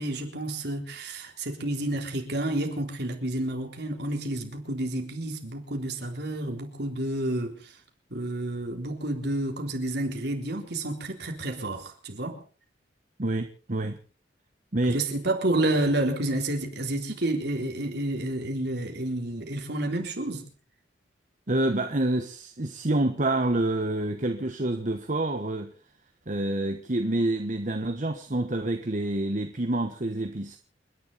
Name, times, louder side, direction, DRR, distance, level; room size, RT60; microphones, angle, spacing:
voice 1, 0.0-7.7 8.1-12.4 14.9-20.5, right 1 dB, 60° right, 3.8 m, -30 dB
voice 2, 13.2-14.0 14.7-15.0 21.5-25.7 26.3-30.6, right 1 dB, 45° right, 1.2 m, -27 dB
29.5 x 11.0 x 4.1 m
head